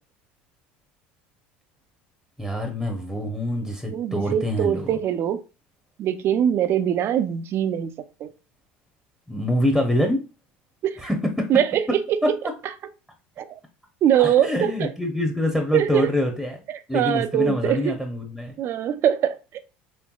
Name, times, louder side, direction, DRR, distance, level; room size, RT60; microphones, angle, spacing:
voice 1, 2.4-5.0 9.3-10.2 11.0-11.5 14.2-16.6 16.9-18.6, left 1 dB, ahead, 0.8 m, -25 dB
voice 2, 3.9-5.4 6.0-7.9 8.2-8.3 10.8-11.0 11.5-12.0 13.4-13.6 14.0-14.9 15.7-16.1 16.7-17.9 18.6-19.6, right 10 dB, 50° right, 0.5 m, -22 dB
4.4 x 3.3 x 2.3 m
supercardioid pair, 90°, 5 cm